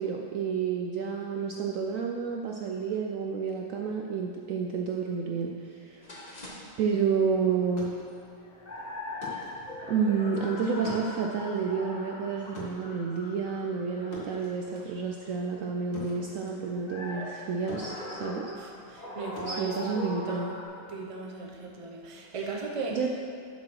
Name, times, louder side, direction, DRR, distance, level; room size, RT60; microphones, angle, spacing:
voice 1, 0.0-6.1 6.8-7.9 9.9-18.5 19.5-20.5 22.3-22.5 22.9-23.1, right 5 dB, 85° right, 1 dB, 0.7 m, -30 dB
sound 1, 6.0-20.7, left 2 dB, 25° left, 1.0 m, -42 dB
sound 2, 7.5-17.4 17.7-20.6, left 1 dB, 85° left, 2.2 m, -47 dB
voice 2, 18.5-20.6 20.9-23.0, right 3 dB, 35° right, 0 dB, 0.5 m, -38 dB
7.5 x 5.8 x 6.1 m, 2.4 s
omnidirectional pair, 2.0 m